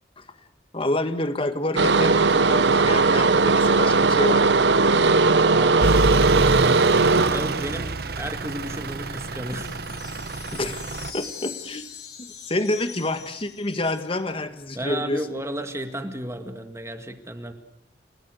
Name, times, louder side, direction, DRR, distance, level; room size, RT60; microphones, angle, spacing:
voice 1, 0.7-4.5 10.5-10.8 11.1-11.9 12.5-15.2, left 1 dB, 30° left, 9 dB, 1.9 m, -28 dB
sound 1, 1.8-7.9, right 3 dB, 80° right, 1.1 m, -18 dB
voice 2, 5.5-6.0 7.2-9.7 14.8-17.5, right 1 dB, 15° right, 7 dB, 1.9 m, -33 dB
Truck / Idling, 5.8-11.1, right 2 dB, 60° right, 1.2 m, -28 dB
sound 2, 9.5-14.2, left 7 dB, 75° left, 6.8 m, -41 dB
30.0 x 18.0 x 8.0 m, 0.74 s
head